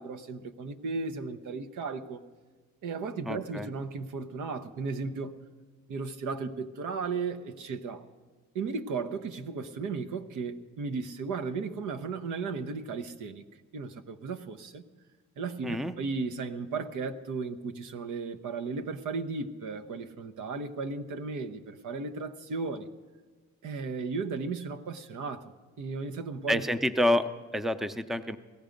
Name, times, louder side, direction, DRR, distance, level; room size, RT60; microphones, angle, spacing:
voice 1, 0.0-2.2 2.8-5.3 5.9-8.0 8.5-13.4 13.7-14.8 15.4-22.9 23.6-26.6, right 4 dB, 80° right, 0.9 m, -35 dB
voice 2, 3.3-3.7 15.6-15.9 26.5-28.4, left 1 dB, ahead, 0.5 m, -28 dB
18.0 x 14.0 x 5.2 m
cardioid pair, 90°, 30 cm